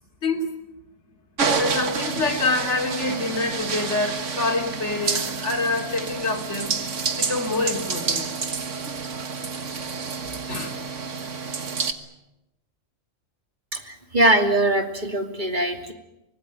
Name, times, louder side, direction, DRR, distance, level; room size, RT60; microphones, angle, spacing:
voice 1, 0.2-0.5 1.6-6.7 7.2-8.2 10.5-10.8, left 3 dB, 60° left, 0 dB, 3.2 m, -26 dB
sound 1, 1.4-11.9, right 5 dB, 70° right, 1.9 m, -28 dB
voice 2, 13.7-15.9, right 1 dB, 35° right, 4 dB, 2.9 m, -22 dB
25.0 x 20.0 x 9.2 m, 0.94 s
omnidirectional pair, 1.3 m